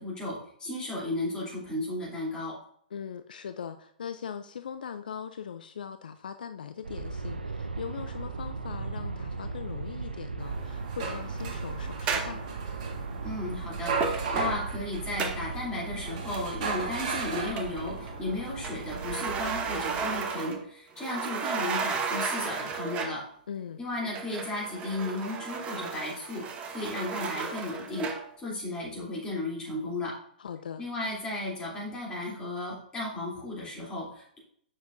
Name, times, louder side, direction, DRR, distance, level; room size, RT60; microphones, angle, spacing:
voice 1, 0.0-2.5 13.2-23.2 23.8-26.4 26.7-28.1 28.4-30.1 30.8-34.4, left 2 dB, 15° left, -5 dB, 2.9 m, -34 dB
voice 2, 2.9-12.4 23.5-23.8 30.4-30.8, left 7 dB, 65° left, 10 dB, 0.4 m, -40 dB
Aircraft, 6.8-19.6, right 3 dB, 85° right, 0.5 m, -38 dB
sound 1, 10.4-20.2, right 4 dB, 50° right, 1.6 m, -36 dB
sound 2, 12.1-12.5 14.0-14.5 15.2-15.5 16.3-16.7 17.0-18.1 18.6-20.7 21.0-23.3 24.1-28.3, right 5 dB, 25° right, 0.8 m, -34 dB
7.2 x 6.0 x 2.5 m, 0.65 s
figure-of-eight pair, 110°, 5 cm